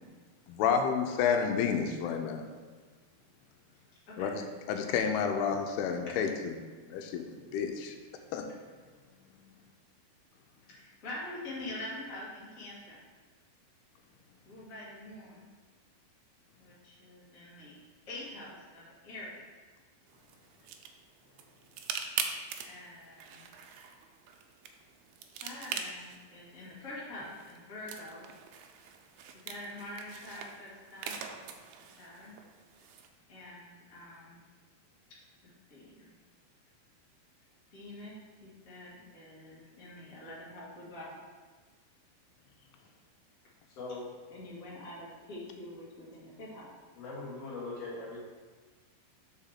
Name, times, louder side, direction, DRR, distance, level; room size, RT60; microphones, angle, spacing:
voice 1, 0.5-2.4 4.2-4.4 4.7-6.5 6.9-8.0 8.3-8.5, left 6 dB, 90° left, 5 dB, 2.6 m, -30 dB
voice 2, 10.7-13.0 14.4-15.4 16.6-17.8 18.1-19.3 22.7-23.5 25.4-28.3 28.5-28.7 29.4-31.2 32.0-32.3 33.3-34.4 35.4-36.1 37.7-38.1 38.4-41.2 44.3-46.7, left 1 dB, 70° left, -7 dB, 0.7 m, -45 dB
sound 1, 20.1-33.1, right 7 dB, 80° right, 2.3 m, -43 dB
voice 3, 43.7-44.1 46.9-48.2, left 3 dB, 50° left, -6 dB, 2.3 m, -41 dB
5.1 x 4.8 x 5.6 m, 1.4 s
omnidirectional pair, 4.5 m